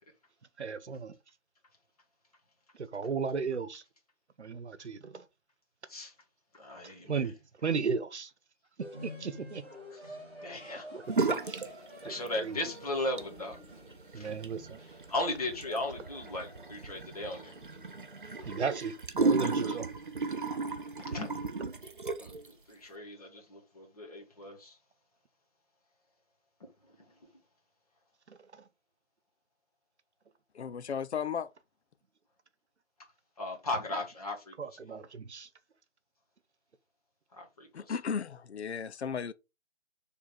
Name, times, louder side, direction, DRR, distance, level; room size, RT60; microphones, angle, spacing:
voice 1, 0.6-1.1 2.7-3.8 4.4-5.2 7.0-8.3 8.8-9.6 10.9-11.6 12.0-12.6 14.1-14.8 18.4-19.9 28.3-28.6 34.6-35.5, right 5 dB, 70° right, 1.0 m, -35 dB
voice 2, 6.5-7.2 9.9-11.0 12.0-13.6 14.1-14.3 15.1-17.6 19.4-19.8 21.0-21.3 22.2-24.8 26.8-27.1 33.4-34.5 37.3-38.0, left 2 dB, 30° left, 1.7 m, -37 dB
sound 1, 8.8-19.0, left 1 dB, 5° right, 1.3 m, -49 dB
sound 2, 11.1-11.7 12.0-12.6 13.0-22.5, right 3 dB, 45° right, 0.6 m, -34 dB
voice 3, 30.5-31.5 37.7-39.3, left 6 dB, 65° left, 0.6 m, -35 dB
6.3 x 3.6 x 4.3 m
hypercardioid pair, 180°, 35 cm